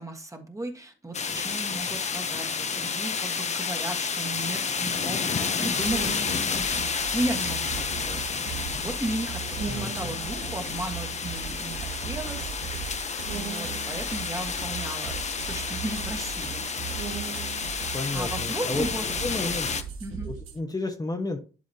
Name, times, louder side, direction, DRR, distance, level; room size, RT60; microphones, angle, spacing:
voice 1, 0.0-12.7 13.3-16.7 17.7-19.6 20.0-20.3, right 2 dB, 15° right, 4 dB, 1.6 m, -35 dB
sound 1, 1.1-19.8, left 5 dB, 35° left, 0.8 m, -30 dB
sound 2, 5.8-20.6, right 8 dB, 80° right, 1.4 m, -37 dB
voice 2, 9.7-10.1 17.9-18.8 19.2-19.7 20.2-21.4, left 2 dB, 20° left, 3 dB, 1.1 m, -31 dB
11.5 x 4.9 x 2.9 m, 0.35 s
cardioid pair, 90°, 20 cm